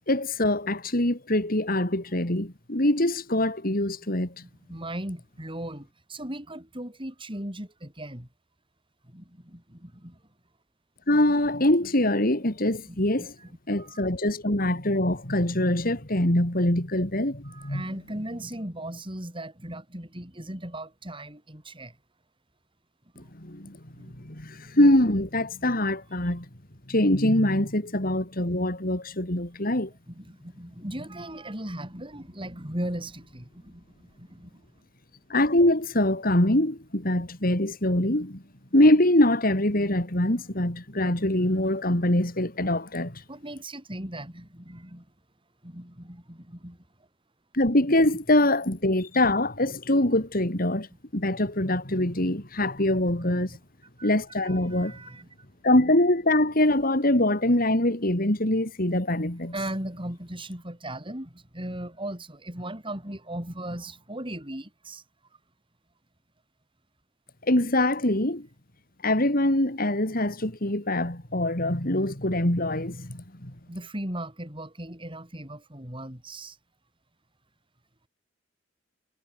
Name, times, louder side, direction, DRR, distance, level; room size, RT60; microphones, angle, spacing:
voice 1, 0.1-4.3 11.1-13.3 13.7-17.8 23.2-23.8 24.2-26.5 26.9-29.9 35.3-38.4 38.7-43.2 47.5-50.9 51.1-53.5 54.0-55.0 55.6-59.5 67.5-68.5 69.0-73.5, left 1 dB, 50° left, 4.0 m, -24 dB
voice 2, 4.4-8.3 9.0-10.2 12.9-13.5 13.8-14.1 17.4-22.0 23.1-23.3 23.6-24.1 25.6-25.7 30.1-34.6 43.3-45.1 45.6-46.8 53.1-53.6 54.0-54.1 54.4-55.3 59.5-65.0 73.7-76.6, right 1 dB, 25° right, 7.4 m, -38 dB
head